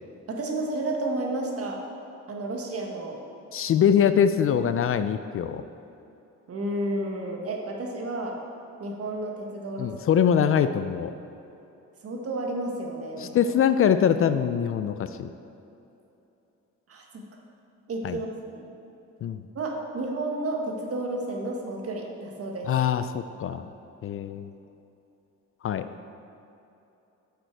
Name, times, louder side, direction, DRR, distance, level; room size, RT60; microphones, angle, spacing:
voice 1, 0.3-1.8 2.3-3.2 6.5-8.4 8.8-9.9 12.0-13.6 16.9-17.2 17.9-18.7 19.5-22.7, right 2 dB, 50° right, 1 dB, 1.5 m, -31 dB
voice 2, 3.5-5.6 9.8-11.1 13.2-15.3 18.0-18.2 19.2-19.5 22.7-23.6 24.0-24.5 25.6-25.9, left 8 dB, 45° left, 11 dB, 0.4 m, -23 dB
9.4 x 6.8 x 4.5 m, 2.9 s
cardioid pair, 90°, 30 cm